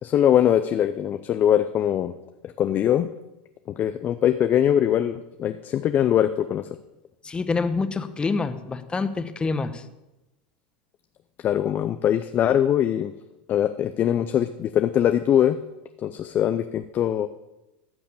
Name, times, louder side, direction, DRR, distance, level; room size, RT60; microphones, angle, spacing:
voice 1, 0.0-2.1 2.4-3.1 3.8-6.7 11.4-13.1 13.5-15.6 16.0-17.3, left 10 dB, 35° left, 9 dB, 0.6 m, -22 dB
voice 2, 7.2-9.8, left 4 dB, 20° left, 10 dB, 1.0 m, -26 dB
14.0 x 6.2 x 7.1 m, 0.95 s
hypercardioid pair, 100°, 5 cm